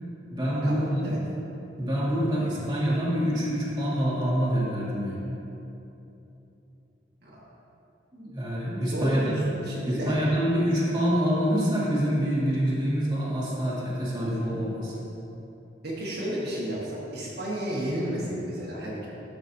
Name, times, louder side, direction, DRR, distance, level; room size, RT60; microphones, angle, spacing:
voice 1, 0.3-1.1 1.8-5.2 8.1-9.4 9.8-15.0, equal, 25° right, -8 dB, 1.8 m, -26 dB
voice 2, 2.3-2.6 7.2-7.4 8.9-10.1 15.8-19.1, right 1 dB, 60° right, -7 dB, 1.4 m, -32 dB
11.0 x 6.8 x 2.7 m, 2.9 s
head